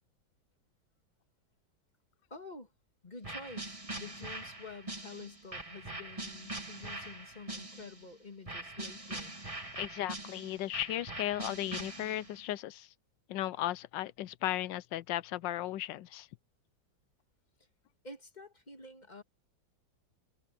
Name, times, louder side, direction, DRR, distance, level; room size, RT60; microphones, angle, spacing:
voice 1, 2.3-2.7 3.0-9.4 18.0-19.2, left 3 dB, 20° left, 2.5 m, -49 dB
sound 1, 3.2-8.0 8.5-12.4, right 2 dB, 15° right, 3.0 m, -43 dB
voice 2, 9.8-12.9 13.3-16.3, left 13 dB, 75° left, 1.3 m, -36 dB
omnidirectional pair, 2.1 m